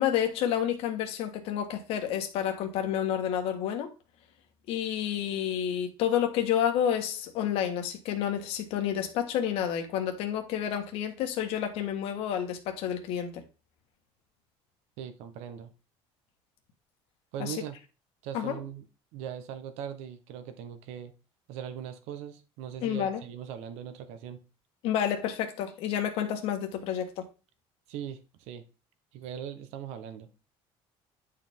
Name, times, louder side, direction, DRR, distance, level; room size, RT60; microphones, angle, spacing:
voice 1, 0.0-3.9 4.7-13.4 17.4-17.6 18.3-18.6 22.8-23.2 24.8-27.2, left 9 dB, 65° left, 1.5 m, -29 dB
voice 2, 15.0-15.7 17.3-17.8 18.2-18.8 19.1-21.1 21.5-24.4 27.9-28.6 29.1-30.3, right 9 dB, 80° right, 1.2 m, -40 dB
9.9 x 4.9 x 3.7 m
cardioid pair, 175°, 11 cm